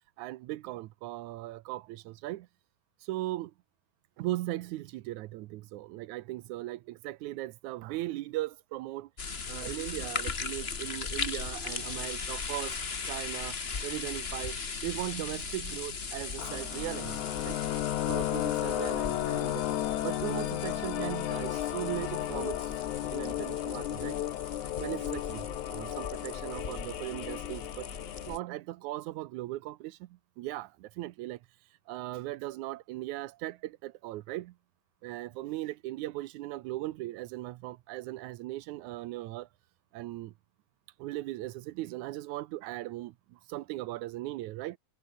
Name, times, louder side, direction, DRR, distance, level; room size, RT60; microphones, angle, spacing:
voice 1, 0.2-2.5 3.0-3.5 4.2-9.1 9.5-12.8 13.0-14.6 14.8-17.6 18.1-19.6 20.0-22.8 23.1-24.2 24.8-27.9 28.3-31.4 31.9-34.6 35.0-39.5 39.9-40.3 41.0-44.8, right 17 dB, 80° right, 2.1 m, -38 dB
sound 1, 9.2-28.4, left 5 dB, 35° left, 1.0 m, -38 dB
sound 2, 16.4-28.4, left 13 dB, 80° left, 2.5 m, -34 dB
omnidirectional pair, 3.4 m